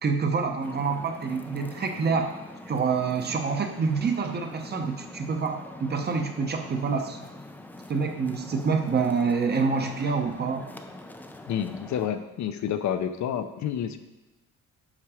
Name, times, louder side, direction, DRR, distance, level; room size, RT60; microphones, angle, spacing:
voice 1, 0.0-2.3 2.7-7.2 7.9-10.7, right 5 dB, 30° right, 4 dB, 0.7 m, -27 dB
sound 1, 0.6-12.1, left 1 dB, 5° left, 0.3 m, -44 dB
voice 2, 11.5-14.0, left 9 dB, 60° left, 9 dB, 0.6 m, -29 dB
7.5 x 5.8 x 4.9 m, 1.0 s
cardioid pair, 165°, 33 cm